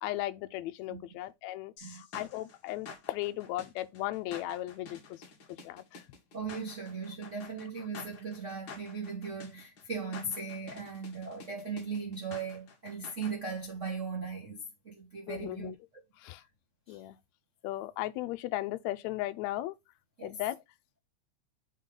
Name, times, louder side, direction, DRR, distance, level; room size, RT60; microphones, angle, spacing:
voice 1, 0.0-5.0 5.6-5.8 15.3-15.7 16.2-16.4 16.9-17.2 17.6-19.7 20.2-20.6, left 15 dB, 80° left, 1.7 m, -36 dB
sound 1, 1.8-13.3, left 4 dB, 50° left, 1.6 m, -49 dB
voice 2, 6.3-15.7 16.9-17.0 20.2-20.4, right 4 dB, 45° right, 0.9 m, -38 dB
7.2 x 3.8 x 3.9 m
omnidirectional pair, 3.6 m